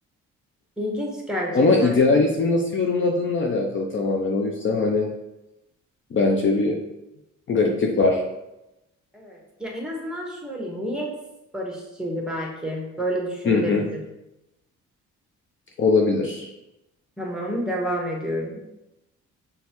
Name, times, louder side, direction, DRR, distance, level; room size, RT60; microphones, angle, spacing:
voice 1, 0.8-2.2 9.1-11.1 11.5-14.0 17.2-18.6, equal, ahead, -1 dB, 1.3 m, -29 dB
voice 2, 1.5-5.1 6.1-6.8 7.5-8.2 13.5-13.8 15.8-16.5, left 3 dB, 40° left, 1 dB, 0.6 m, -21 dB
5.3 x 3.4 x 3.0 m, 0.92 s
cardioid pair, 90°, 30 cm